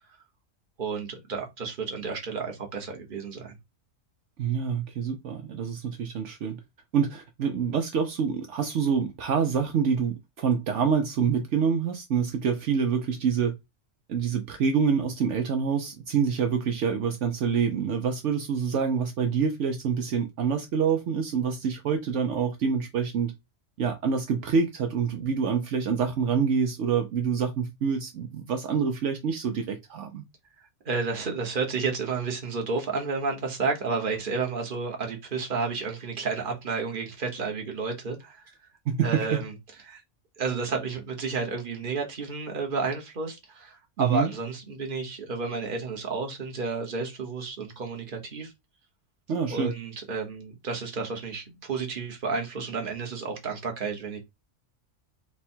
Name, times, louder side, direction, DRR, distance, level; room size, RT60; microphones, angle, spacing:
voice 1, 0.8-3.5 30.8-38.4 39.0-39.5 39.8-40.0 40.4-48.5 49.5-54.2, right 4 dB, 45° right, 1.2 m, -31 dB
voice 2, 4.4-6.6 6.9-13.5 14.1-23.3 23.8-30.2 38.9-39.4 44.0-44.3 49.3-49.7, right 6 dB, 70° right, 1.0 m, -26 dB
4.6 x 2.2 x 4.3 m
omnidirectional pair, 1.3 m